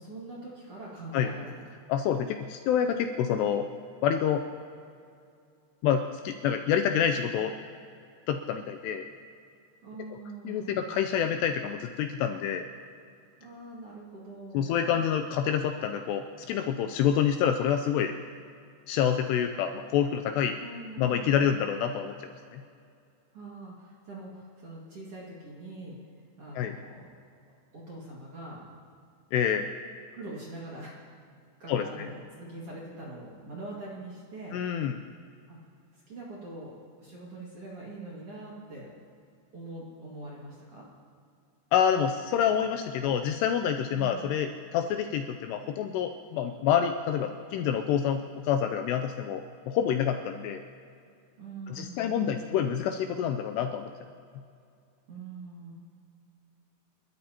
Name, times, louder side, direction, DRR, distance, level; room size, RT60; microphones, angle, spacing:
voice 1, 0.0-1.5 9.8-10.9 13.4-15.0 20.6-21.6 23.3-26.0 26.4-27.1 27.7-28.6 30.1-30.9 31.6-34.6 35.5-35.6 35.9-38.9 39.5-40.8 43.9-44.3 51.4-52.6 55.1-55.7, right 2 dB, 45° right, -5 dB, 2.1 m, -43 dB
voice 2, 1.9-3.7 4.0-4.4 5.8-7.5 8.3-9.1 10.4-12.6 14.5-18.1 18.9-20.6 21.0-22.2 22.5-22.6 26.6-26.7 29.3-29.7 31.7-32.1 34.5-35.0 41.7-50.6 51.7-53.9, left 8 dB, 85° left, 6 dB, 2.5 m, -27 dB
29.5 x 12.5 x 2.9 m, 2.4 s
omnidirectional pair, 5.3 m